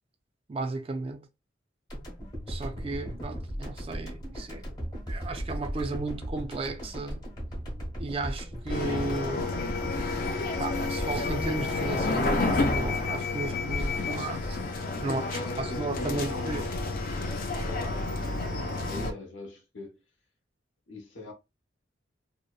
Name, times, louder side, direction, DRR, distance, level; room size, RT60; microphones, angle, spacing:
voice 1, 0.5-1.3 2.5-4.7 5.1-7.3 8.0-9.5 10.6-14.6 15.0-15.3 15.6-16.6, right 3 dB, 30° right, 0.3 m, -34 dB
sound 1, 1.9-14.1, equal, 20° left, 0.8 m, -38 dB
sound 2, 8.7-19.1, left 3 dB, 50° left, 0.4 m, -30 dB
voice 2, 15.1-16.8 17.5-20.0 20.9-21.3, left 1 dB, 85° left, 0.8 m, -41 dB
2.7 x 2.0 x 2.2 m
head